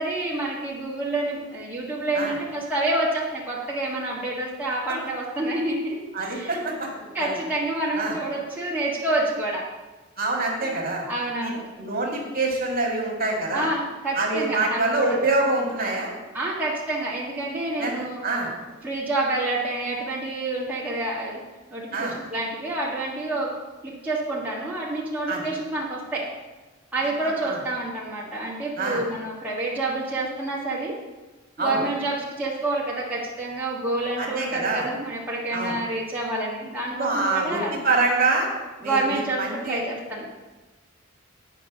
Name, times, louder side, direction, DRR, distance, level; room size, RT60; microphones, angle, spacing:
voice 1, 0.0-6.6 7.1-9.6 10.6-10.7 11.1-11.6 12.0-12.2 13.5-15.1 16.3-18.2 18.8-21.4 21.7-23.5 23.8-26.2 26.9-30.9 31.6-37.7 38.8-40.3, right 2 dB, 10° right, -6 dB, 1.5 m, -28 dB
voice 2, 6.1-6.9 7.2-7.4 8.0-8.2 10.2-11.1 11.4-11.5 11.8-13.7 14.1-16.1 17.8-17.9 18.2-18.5 21.9-22.2 25.3-25.4 27.4-27.6 28.8-29.0 31.6-31.8 34.2-34.9 35.5-35.7 37.0-38.5 38.8-39.8, right 3 dB, 45° right, -1 dB, 1.8 m, -25 dB
9.0 x 5.3 x 6.0 m, 1.2 s
head